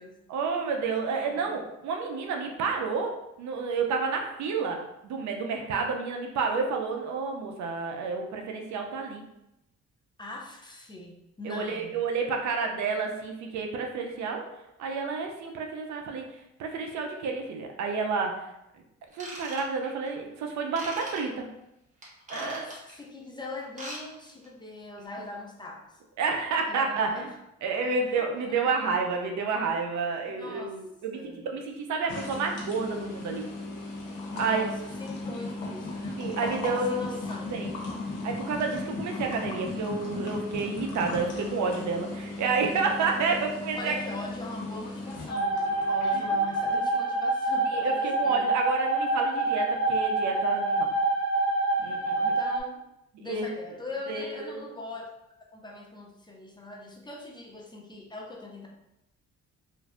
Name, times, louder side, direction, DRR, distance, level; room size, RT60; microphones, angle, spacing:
voice 1, 0.3-9.2 11.4-14.4 14.8-16.3 16.6-18.5 19.1-21.5 22.3-22.7 26.2-27.2 27.6-33.5 34.4-34.6 36.2-37.2 37.5-37.7 38.2-43.9 46.1-46.2 47.7-50.9 51.8-52.1 53.2-53.5 54.1-54.6, right 4 dB, 70° right, 3 dB, 0.5 m, -30 dB
voice 2, 1.2-1.6 10.2-12.0 22.3-26.0 26.7-27.4 27.8-28.8 29.0-29.1 30.3-30.8 31.1-31.5 34.3-37.6 43.7-48.6 52.2-52.8 53.2-55.0 55.5-58.7, left 2 dB, 15° left, -1 dB, 0.5 m, -41 dB
Ratchet pawl / Tools, 19.1-20.1 20.7-21.2 22.0-22.9 23.6-24.0 24.3-24.5 25.0-25.1, right 1 dB, 25° right, 1.0 m, -40 dB
sound 1, 32.1-46.8, left 2 dB, 85° left, 0.7 m, -37 dB
sound 2, 45.3-52.6, right 2 dB, 50° left, 0.7 m, -26 dB
3.1 x 2.5 x 2.4 m, 0.87 s
cardioid pair, 90°, 30 cm